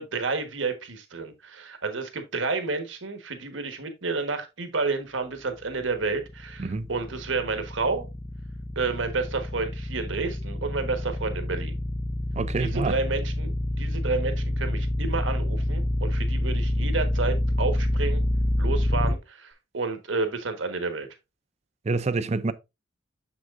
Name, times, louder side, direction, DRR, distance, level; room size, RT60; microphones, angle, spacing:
voice 1, 0.0-8.1 8.7-11.7 12.6-13.5 13.8-18.2 18.6-21.1, right 4 dB, 85° right, 1.3 m, -30 dB
sound 1, 5.8-19.1, left 1 dB, 15° left, 0.5 m, -27 dB
voice 2, 12.3-13.0 21.8-22.5, right 3 dB, 35° right, 0.5 m, -27 dB
7.0 x 6.1 x 2.4 m
head